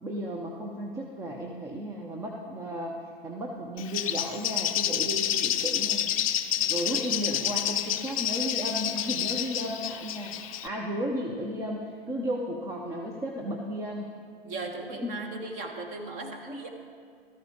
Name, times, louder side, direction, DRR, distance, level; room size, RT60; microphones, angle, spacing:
voice 1, 0.0-3.0 3.2-6.1 6.7-10.4 10.6-14.1 15.0-15.2, equal, 10° right, 0 dB, 0.6 m, -34 dB
Bird, 3.8-10.7, left 10 dB, 35° left, 0.5 m, -29 dB
voice 2, 6.6-7.5 14.4-16.7, right 2 dB, 25° right, 3 dB, 1.4 m, -38 dB
13.5 x 13.0 x 3.7 m, 2.2 s
figure-of-eight pair, 110°, 30 cm